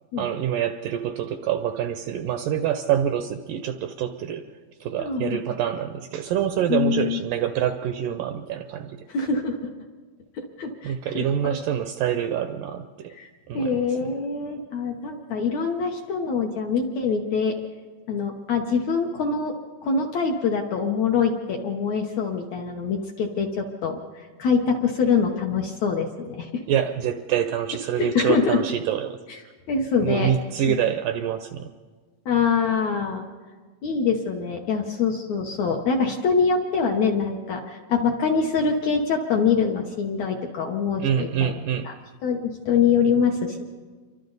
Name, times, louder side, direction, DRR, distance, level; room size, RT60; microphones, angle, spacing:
voice 1, 0.2-4.5 4.8-9.1 10.8-13.1 13.5-14.0 26.7-29.2 30.0-31.7 41.0-41.9, right 9 dB, 75° right, 9 dB, 2.0 m, -26 dB
voice 2, 5.0-5.4 6.7-7.2 9.1-9.7 10.6-11.6 13.1-13.3 13.5-17.6 18.1-19.5 19.8-26.6 28.0-28.6 29.7-30.3 30.7-30.8 32.3-33.3 33.8-41.5 41.8-41.9 42.2-43.6, left 5 dB, 65° left, 2 dB, 1.9 m, -24 dB
28.5 x 24.5 x 4.0 m, 1.5 s
omnidirectional pair, 4.4 m